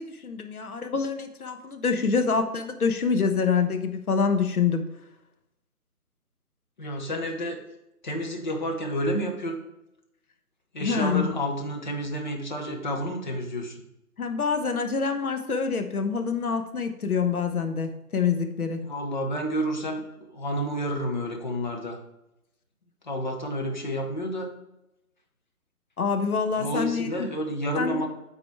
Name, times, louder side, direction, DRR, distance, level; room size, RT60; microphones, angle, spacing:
voice 1, 0.0-4.8 10.8-11.3 14.2-18.8 26.0-27.3 27.8-28.0, left 5 dB, 70° left, 6 dB, 1.2 m, -26 dB
voice 2, 6.8-7.6 8.0-9.6 10.7-13.8 18.8-20.0 20.3-22.0 23.0-24.5 26.6-28.1, equal, 30° left, 2 dB, 0.9 m, -30 dB
8.9 x 4.1 x 4.6 m, 0.92 s
figure-of-eight pair, 160°, 46 cm